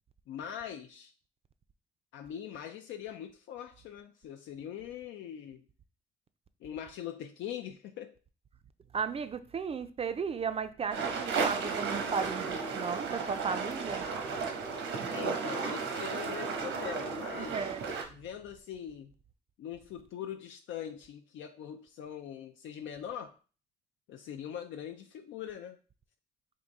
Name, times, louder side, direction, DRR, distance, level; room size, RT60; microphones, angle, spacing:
voice 1, 0.3-1.1 2.1-5.7 6.6-8.1 15.1-17.7 18.1-19.1 19.6-23.3 24.1-25.8, left 9 dB, 75° left, 0.4 m, -42 dB
voice 2, 8.9-14.1 17.4-17.8, right 6 dB, 30° right, 0.4 m, -35 dB
sound 1, 10.9-18.0, right 5 dB, 80° right, 0.9 m, -34 dB
3.6 x 2.6 x 4.0 m
cardioid pair, 90°, 20 cm